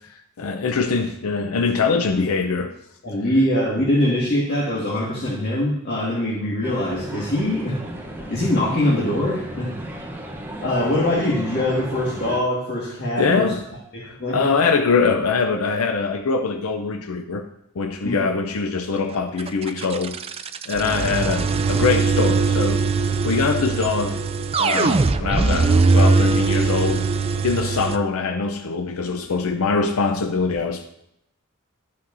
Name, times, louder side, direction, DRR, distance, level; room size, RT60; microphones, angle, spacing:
voice 1, 0.1-2.8 13.2-13.6 14.0-17.5 17.8-20.2 20.7-22.8 23.2-24.2 24.6-27.1 27.4-30.9, left 4 dB, 80° left, 6 dB, 0.6 m, -23 dB
voice 2, 3.0-7.8 8.3-9.7 10.6-13.5 14.2-14.5 18.0-18.2, left 1 dB, 50° left, -6 dB, 1.9 m, -22 dB
sound 1, 6.6-12.4, right 1 dB, 10° right, 0.8 m, -35 dB
sound 2, 19.4-28.0, right 4 dB, 25° right, 0.4 m, -20 dB
13.0 x 5.6 x 2.6 m, 0.79 s
head